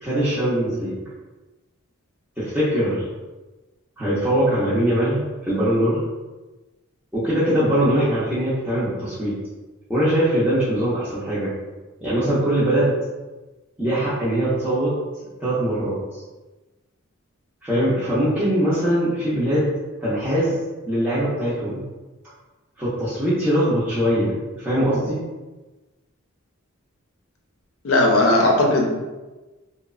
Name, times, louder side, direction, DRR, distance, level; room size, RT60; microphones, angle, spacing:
voice 1, 0.0-0.9 2.4-3.0 4.0-6.0 7.1-9.3 9.9-11.5 12.0-12.9 13.8-15.0 15.4-16.2 17.6-19.7 20.0-20.6 20.9-21.8 22.8-25.2, equal, 5° right, -12 dB, 0.5 m, -21 dB
voice 2, 27.8-28.9, left 2 dB, 70° left, 0 dB, 0.5 m, -17 dB
2.8 x 2.0 x 2.4 m, 1.2 s
head